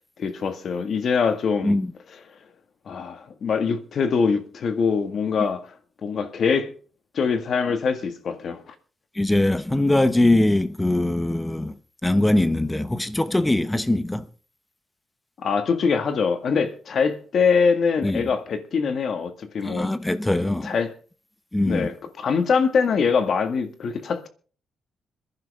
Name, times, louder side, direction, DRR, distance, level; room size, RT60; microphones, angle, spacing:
voice 1, 0.2-1.8 2.9-5.7 6.0-6.7 7.1-8.7 15.4-19.9 20.6-20.9 21.6-24.3, left 5 dB, 55° left, 1.8 m, -23 dB
voice 2, 9.1-11.7 12.0-14.3 18.0-18.3 19.6-20.8 21.5-21.9, left 1 dB, 10° left, 0.8 m, -22 dB
25.5 x 10.5 x 3.6 m
cardioid pair, 120°, 0 cm